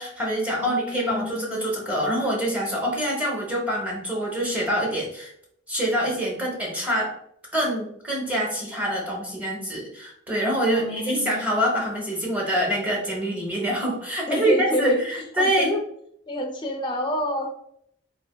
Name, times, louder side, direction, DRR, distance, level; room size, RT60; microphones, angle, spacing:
voice 1, 0.0-5.3 5.7-7.1 7.5-15.7, equal, 10° right, -3 dB, 0.7 m, -25 dB
voice 2, 0.6-1.7 10.6-11.4 14.3-15.0 15.4-15.8 16.3-17.6, left 1 dB, 25° left, 3 dB, 0.4 m, -28 dB
3.2 x 2.5 x 2.2 m, 0.71 s
head